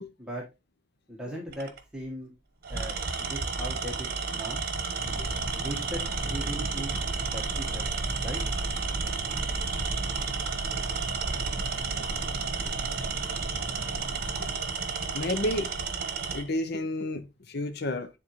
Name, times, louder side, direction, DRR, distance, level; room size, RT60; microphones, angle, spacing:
voice 1, 1.1-2.3 2.7-4.6 5.5-7.0 7.3-7.9 8.2-8.4, right 1 dB, 5° right, 1.3 m, -38 dB
Tools, 1.5-1.8 2.6-16.5, right 4 dB, 55° right, 1.0 m, -32 dB
sound 1, 5.0-14.5, right 1 dB, 20° left, 1.6 m, -39 dB
voice 2, 15.1-15.7 16.3-18.1, left 1 dB, 60° left, 0.7 m, -31 dB
9.8 x 3.8 x 3.0 m
head